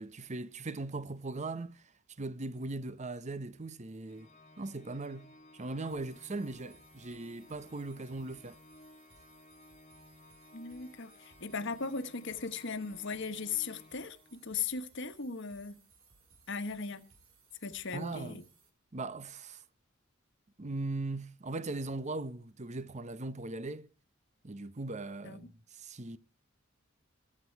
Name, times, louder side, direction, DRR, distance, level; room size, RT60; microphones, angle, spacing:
voice 1, 0.0-1.8 2.2-4.3 4.6-5.3 5.5-8.6 17.9-18.4 18.9-19.6 20.6-23.9 24.4-26.2, right 2 dB, 35° right, 0.8 m, -39 dB
Organ, 4.1-14.7, left 1 dB, 30° left, 1.5 m, -58 dB
sound 1, 5.9-18.7, right 4 dB, 90° right, 3.4 m, -64 dB
voice 2, 10.5-15.8 16.5-17.0 17.6-18.4 25.2-25.4, left 5 dB, 60° left, 1.4 m, -38 dB
23.0 x 8.0 x 4.6 m
head